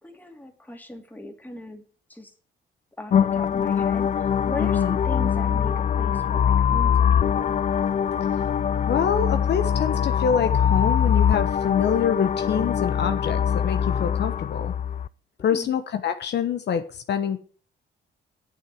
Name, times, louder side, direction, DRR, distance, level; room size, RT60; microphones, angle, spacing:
voice 1, 0.0-1.8 2.1-2.3 3.0-7.6 15.4-15.7, left 1 dB, 10° left, 4 dB, 2.6 m, -39 dB
sound 1, 3.1-15.1, left 8 dB, 40° left, 0.4 m, -23 dB
voice 2, 4.6-5.0 8.9-14.7 15.4-17.4, left 8 dB, 60° left, 8 dB, 1.1 m, -25 dB
9.1 x 6.9 x 7.7 m, 0.42 s
cardioid pair, 90°, 20 cm